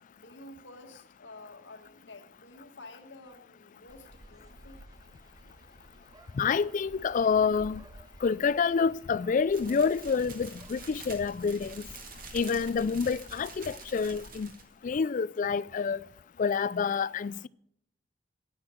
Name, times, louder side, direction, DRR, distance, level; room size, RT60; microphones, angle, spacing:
voice 1, 0.1-4.8, left 2 dB, 80° left, 1.7 m, -50 dB
sound 1, 3.9-11.9, right 1 dB, 20° right, 0.6 m, -54 dB
voice 2, 6.3-7.8 8.2-11.8 12.3-14.5 14.8-16.0 16.4-17.5, left 5 dB, 45° left, 0.3 m, -28 dB
sound 2, 9.5-14.7, right 3 dB, 50° right, 2.0 m, -47 dB
9.6 x 9.6 x 6.2 m
head